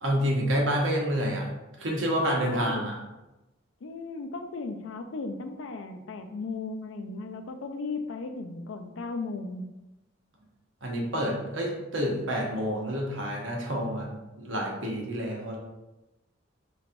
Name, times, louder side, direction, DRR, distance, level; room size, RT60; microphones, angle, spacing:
voice 1, 0.0-1.5 1.8-3.0 10.8-15.6, equal, 75° right, -1 dB, 0.9 m, -28 dB
voice 2, 2.5-2.8 3.8-9.6, left 3 dB, 75° left, 6 dB, 0.4 m, -36 dB
4.1 x 3.2 x 2.5 m, 1.0 s
head